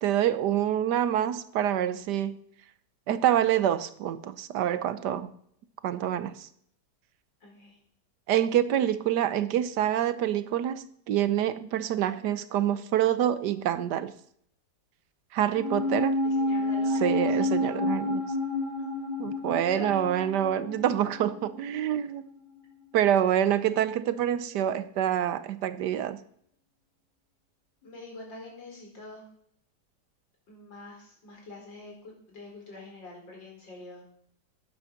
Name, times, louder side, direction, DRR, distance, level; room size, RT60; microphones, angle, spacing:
voice 1, 0.0-2.4 3.1-5.3 5.8-6.5 8.3-14.1 15.3-16.2 17.0-18.2 19.2-22.2 22.9-26.2, right 11 dB, 75° right, 14 dB, 1.3 m, -26 dB
voice 2, 7.4-7.8 16.2-17.3 19.6-20.0 27.8-29.2 30.5-34.0, left 2 dB, 90° left, -1 dB, 5.1 m, -45 dB
sound 1, 15.5-22.1 22.3-22.4, left 2 dB, 25° right, 3.8 m, -29 dB
12.5 x 9.8 x 5.8 m, 0.66 s
omnidirectional pair, 1.9 m